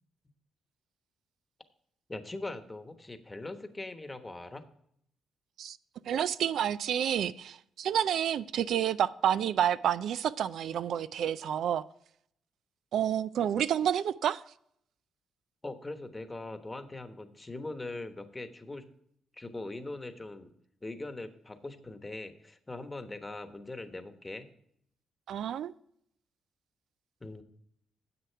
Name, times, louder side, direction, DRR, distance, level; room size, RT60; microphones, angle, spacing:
voice 1, 2.1-4.6 15.6-18.9 19.3-20.5 20.8-24.5 27.2-27.4, left 2 dB, 15° left, 1.1 m, -41 dB
voice 2, 6.1-11.8 12.9-14.4 25.3-25.7, right 9 dB, 70° right, 0.3 m, -29 dB
10.0 x 7.7 x 4.5 m
cardioid pair, 90°, 0 cm